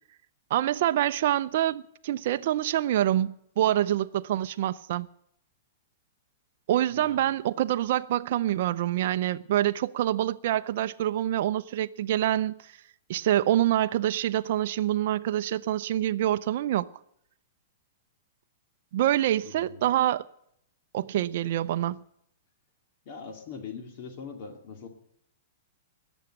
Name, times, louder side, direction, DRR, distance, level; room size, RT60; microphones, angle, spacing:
voice 1, 0.5-5.1 6.7-12.5 13.1-16.9 18.9-20.2 20.9-22.0, right 12 dB, 55° right, 0.5 m, -26 dB
voice 2, 19.4-19.8 23.1-24.9, left 5 dB, 45° left, 2.2 m, -42 dB
19.5 x 7.1 x 10.0 m
hypercardioid pair, 160°, 0 cm